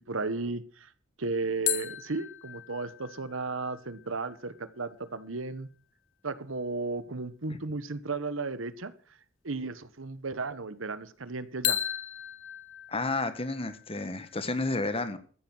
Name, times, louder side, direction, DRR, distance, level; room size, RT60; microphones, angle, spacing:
voice 1, 0.1-0.9 1.2-5.7 6.2-8.9 9.4-11.8, right 3 dB, 80° right, 14 dB, 1.2 m, -34 dB
sound 1, 1.7-5.2 11.6-14.4, left 11 dB, 85° left, 1.1 m, -36 dB
voice 2, 12.9-15.2, left 2 dB, 30° left, 11 dB, 1.5 m, -31 dB
14.0 x 9.5 x 6.2 m, 0.43 s
head